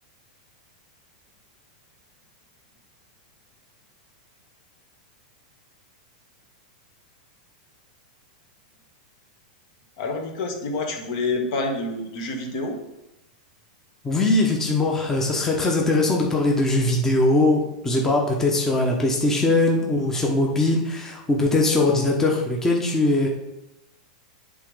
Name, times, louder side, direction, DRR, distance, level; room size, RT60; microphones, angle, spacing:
voice 1, 10.0-12.8, left 2 dB, 55° left, 3 dB, 1.5 m, -27 dB
voice 2, 14.0-23.3, left 2 dB, 10° left, -1 dB, 0.9 m, -21 dB
8.4 x 3.8 x 4.8 m, 0.94 s
supercardioid pair, 145°, 4 cm